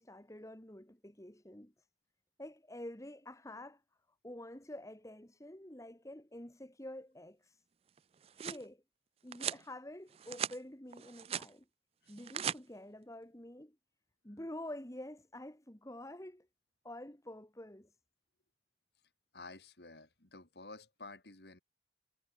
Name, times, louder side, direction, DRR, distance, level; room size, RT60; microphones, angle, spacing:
voice 1, 0.0-1.7 2.4-3.8 4.2-7.6 8.3-8.8 9.2-11.7 12.1-13.8 14.2-16.5 16.8-17.9, left 1 dB, 20° left, 1.9 m, -48 dB
sound 1, 8.0-8.6 9.3-9.6 10.1-10.6 10.9-11.5 12.1-12.6, right 9 dB, 35° right, 0.3 m, -39 dB
voice 2, 19.3-21.6, left 3 dB, 65° left, 3.0 m, -51 dB
head